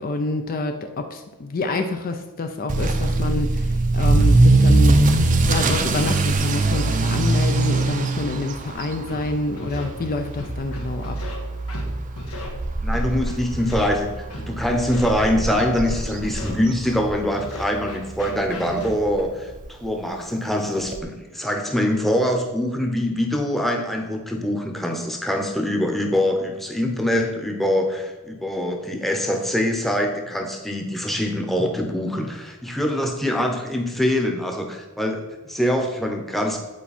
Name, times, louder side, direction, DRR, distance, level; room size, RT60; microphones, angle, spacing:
voice 1, 0.0-5.0 5.5-11.2, left 2 dB, 40° left, 6 dB, 0.5 m, -27 dB
Motor vehicle (road) / Accelerating revving vroom, 2.7-17.5 17.8-18.2 18.7-18.8 19.1-19.2 19.5-19.6 20.9-21.0, right 2 dB, 35° right, 0.6 m, -22 dB
Scratching (performance technique), 9.1-9.2 9.6-9.8 10.4-11.4 11.7-11.9 12.2-12.5 12.9-13.9 14.3-14.5 14.8-15.1 15.6-16.5 16.9-17.0 17.4-19.2, left 2 dB, 85° left, 1.4 m, -36 dB
voice 2, 12.8-14.1 14.4-36.6, left 1 dB, ahead, 3 dB, 0.8 m, -24 dB
8.5 x 4.5 x 4.2 m, 1.2 s
head